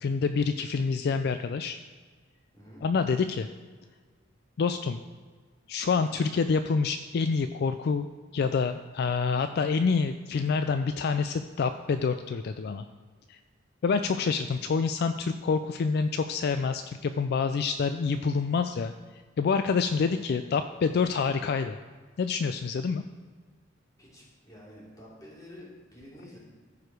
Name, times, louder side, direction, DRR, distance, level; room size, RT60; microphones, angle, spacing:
voice 1, 0.0-1.8 2.8-3.5 4.6-5.0 5.7-8.1 8.3-12.9 13.3-13.4 13.8-18.9 19.4-21.8 22.2-23.0, left 5 dB, 55° left, 9 dB, 0.3 m, -27 dB
voice 2, 24.0-26.4, equal, 20° left, -6 dB, 3.0 m, -49 dB
14.5 x 4.9 x 4.7 m, 1.5 s
head